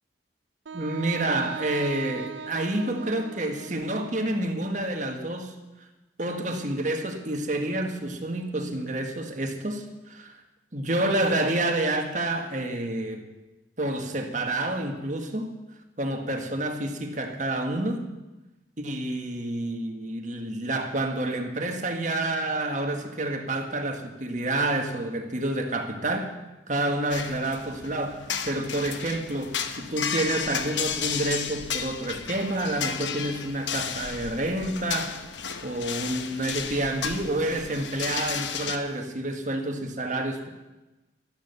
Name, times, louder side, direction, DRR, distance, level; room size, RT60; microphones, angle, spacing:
voice 1, 0.7-5.6 6.2-10.4 10.7-13.3 13.8-15.5 16.0-18.1 18.8-26.3 26.7-35.1 35.6-40.5, right 1 dB, 40° right, 5 dB, 1.6 m, -29 dB
Wind instrument woodwind instrument, 0.7-4.7, right 5 dB, 85° right, 0.6 m, -40 dB
sound 1, 27.1-38.8, left 7 dB, 85° left, 1.0 m, -33 dB
13.0 x 11.5 x 6.8 m, 1.1 s
head